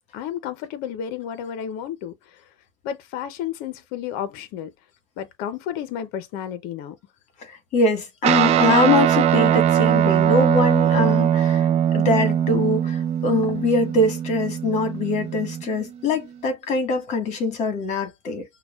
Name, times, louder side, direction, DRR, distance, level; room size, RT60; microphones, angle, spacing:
voice 1, 0.1-2.4 2.8-4.7 5.2-7.0, left 9 dB, 60° left, 0.6 m, -32 dB
voice 2, 7.7-11.7 11.9-18.4, left 2 dB, 40° left, 1.5 m, -23 dB
Guitar, 8.2-15.9, right 10 dB, 35° right, 0.5 m, -21 dB
5.8 x 2.2 x 2.3 m
cardioid pair, 145°, 18 cm